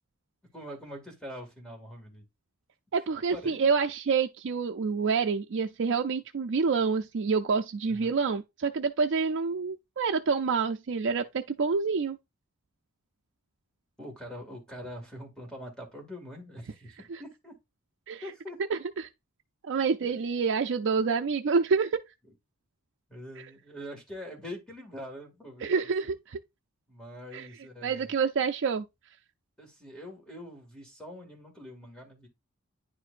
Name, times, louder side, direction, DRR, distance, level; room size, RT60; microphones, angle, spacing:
voice 1, 0.5-2.3 3.3-3.6 7.9-8.1 14.0-17.5 18.2-18.6 20.0-20.2 23.1-25.8 26.9-28.1 29.6-32.3, equal, 5° left, 2.0 m, -43 dB
voice 2, 2.9-12.2 17.1-17.2 18.1-18.2 18.7-19.1 19.6-22.0 25.6-26.4 27.3-27.5 27.8-28.8, right 5 dB, 55° right, 0.4 m, -27 dB
9.8 x 4.5 x 2.5 m
head